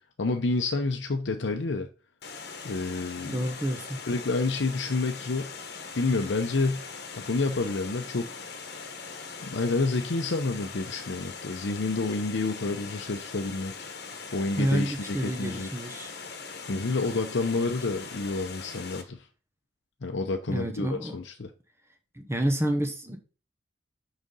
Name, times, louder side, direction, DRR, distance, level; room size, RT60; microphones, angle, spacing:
voice 1, 0.2-1.9 2.6-3.4 4.1-5.5 5.9-6.8 7.2-8.4 9.4-13.7 14.3-15.7 16.7-19.2 20.0-21.5, left 3 dB, 75° left, 0.7 m, -29 dB
Water, 2.2-19.0, left 5 dB, 60° left, 1.2 m, -41 dB
voice 2, 3.2-4.0 14.6-16.1 17.6-17.7 20.5-21.2 22.1-23.2, right 1 dB, 15° right, 0.9 m, -29 dB
6.4 x 5.0 x 5.4 m
head